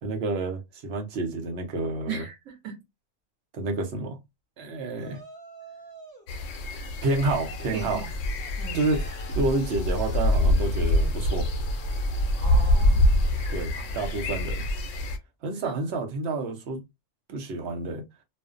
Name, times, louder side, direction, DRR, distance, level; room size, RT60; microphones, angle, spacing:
voice 1, 0.0-2.2 3.5-4.2 4.6-5.2 7.0-8.0 8.7-11.5 13.5-14.7 15.4-16.8 17.3-18.0, right 2 dB, 60° right, 0.9 m, -29 dB
voice 2, 2.1-2.8 7.7-8.1 8.6-8.8 12.4-13.1 13.8-13.9 15.5-15.8, right 6 dB, 90° right, 1.0 m, -37 dB
Yell, 4.9-6.3 7.0-10.4, right 2 dB, 20° right, 1.0 m, -48 dB
sound 1, 6.3-15.2, left 1 dB, 80° left, 0.9 m, -25 dB
2.5 x 2.1 x 2.4 m
omnidirectional pair, 1.3 m